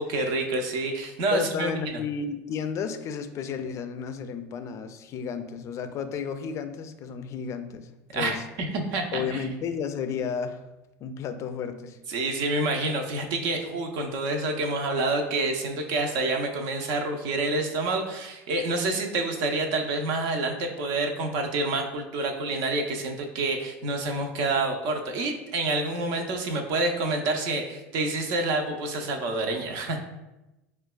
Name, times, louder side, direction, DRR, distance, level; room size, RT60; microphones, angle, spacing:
voice 1, 0.0-1.7 8.1-9.5 12.1-30.0, right 2 dB, 65° right, 3 dB, 0.6 m, -28 dB
voice 2, 1.3-8.4 9.1-10.6 11.0-12.0, left 6 dB, 45° left, 9 dB, 0.3 m, -32 dB
4.6 x 2.2 x 2.2 m, 0.99 s
hypercardioid pair, 85°, 7 cm